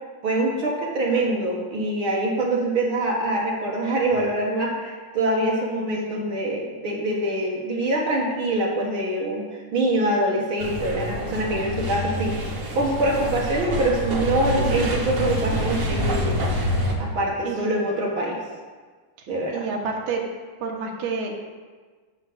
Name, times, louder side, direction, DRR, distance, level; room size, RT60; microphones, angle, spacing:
voice 1, 0.2-12.4 12.7-16.4 17.0-18.4 19.3-19.7, right 1 dB, 55° right, -3 dB, 1.6 m, -24 dB
voice 2, 5.8-6.2 17.4-17.8 19.2-20.2 20.6-21.4, right 4 dB, 70° right, 0 dB, 2.5 m, -30 dB
sound 1, 10.6-16.9, equal, 85° right, 0.7 m, -27 dB
9.4 x 5.3 x 7.0 m, 1.5 s
omnidirectional pair, 3.7 m